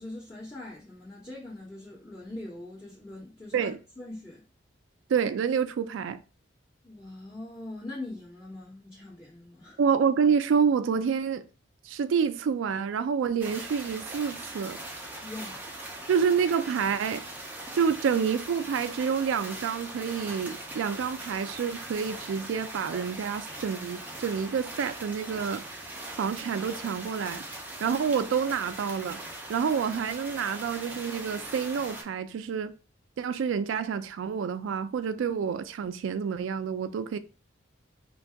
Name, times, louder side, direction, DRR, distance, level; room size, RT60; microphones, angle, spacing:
voice 1, 0.0-4.4 6.8-9.8 15.2-15.7, left 2 dB, 30° left, 1.2 m, -42 dB
voice 2, 5.1-6.2 9.8-11.4 11.9-14.8 16.1-17.2 17.7-25.7 26.2-27.4 27.8-29.2 29.5-32.7 33.2-37.2, right 6 dB, 75° right, 0.3 m, -28 dB
sound 1, 13.4-32.0, right 1 dB, 10° right, 0.5 m, -41 dB
2.6 x 2.3 x 3.3 m
head